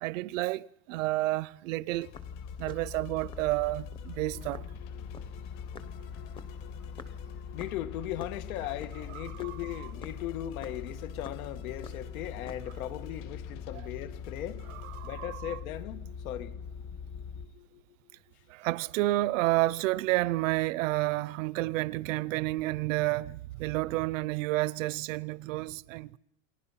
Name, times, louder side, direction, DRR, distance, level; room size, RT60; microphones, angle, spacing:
voice 1, 0.0-2.1 2.6-4.6 9.1-9.9 14.7-15.6 18.5-26.2, right 19 dB, 70° right, 0.8 m, -30 dB
sound 1, 1.9-15.1, left 10 dB, 60° left, 3.6 m, -54 dB
sound 2, 1.9-3.5 3.9-4.1 4.5-8.4 8.6-11.6 11.8-12.8, left 5 dB, 10° left, 0.8 m, -49 dB
sound 3, 2.1-17.5, left 6 dB, 30° left, 1.2 m, -42 dB
voice 2, 4.8-17.8, left 12 dB, 85° left, 2.0 m, -39 dB
29.0 x 20.5 x 5.8 m
supercardioid pair, 175°, 41 cm